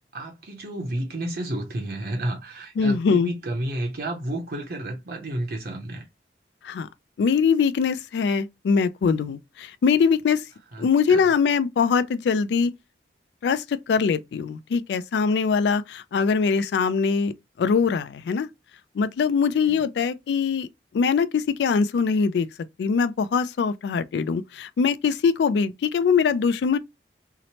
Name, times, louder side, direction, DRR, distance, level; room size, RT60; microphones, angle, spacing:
voice 1, 0.0-6.0 10.7-11.2 19.7-19.8, right 1 dB, 60° right, 0.6 m, -31 dB
voice 2, 2.8-3.3 6.6-6.9 7.2-10.4 10.8-12.7 13.4-18.5 18.9-20.7 20.9-22.5 22.8-26.8, left 5 dB, 75° left, 0.3 m, -22 dB
2.8 x 2.0 x 2.8 m
head